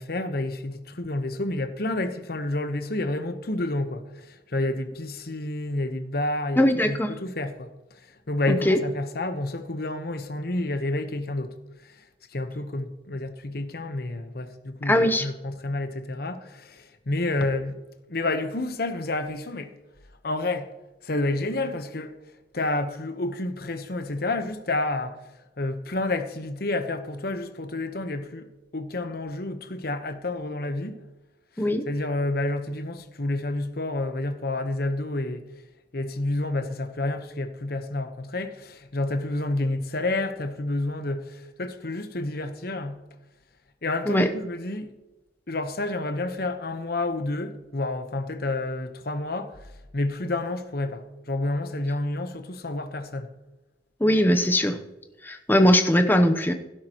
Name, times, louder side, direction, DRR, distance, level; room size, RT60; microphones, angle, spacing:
voice 1, 0.0-11.6 11.8-17.8 18.1-19.7 20.2-20.7 21.0-22.2 22.5-25.2 25.6-31.0 31.6-35.4 35.9-43.0 43.8-45.0 45.5-53.3, left 2 dB, 60° left, 1.0 m, -29 dB
voice 2, 6.6-7.1 8.5-8.8 14.9-15.2 31.6-31.9 44.1-44.3 54.0-54.8 55.2-56.5, equal, 10° left, 0.8 m, -20 dB
15.5 x 12.0 x 3.0 m
head